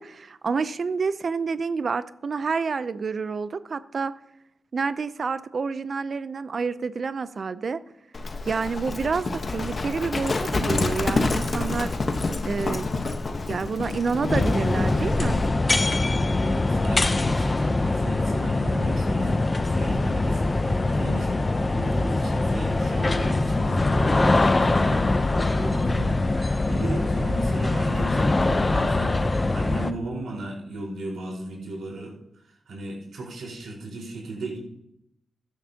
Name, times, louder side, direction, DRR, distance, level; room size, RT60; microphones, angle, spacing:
voice 1, 0.0-4.1 4.7-7.8 8.4-11.9 12.4-12.9 13.5-15.4, right 5 dB, 50° right, 14 dB, 0.5 m, -28 dB
Livestock farm animals working animals, 8.1-15.5, left 3 dB, 40° left, 1.1 m, -28 dB
sound 1, 14.3-29.9, left 2 dB, 25° left, 0.6 m, -23 dB
voice 2, 16.4-19.3 19.6-25.0 25.3-34.6, right 2 dB, 75° right, -2 dB, 4.4 m, -36 dB
14.5 x 11.0 x 2.8 m, 0.80 s
wide cardioid pair, 100°, 0 cm